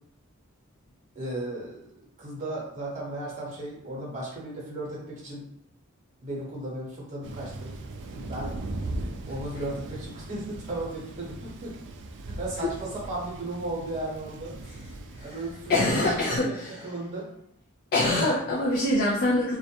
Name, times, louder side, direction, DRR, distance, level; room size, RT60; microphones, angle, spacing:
voice 1, 1.1-1.8 2.2-5.4 6.2-7.7 8.1-8.5 9.3-11.7 12.2-14.5 15.2-16.5 16.8-17.3, right 2 dB, 35° right, -4 dB, 0.9 m, -35 dB
Thunder, 7.2-16.3, right 2 dB, 55° right, 0.3 m, -39 dB
voice 2, 15.7-16.8 17.9-19.6, left 2 dB, 45° left, -4 dB, 0.4 m, -24 dB
2.3 x 2.1 x 2.8 m, 0.74 s
head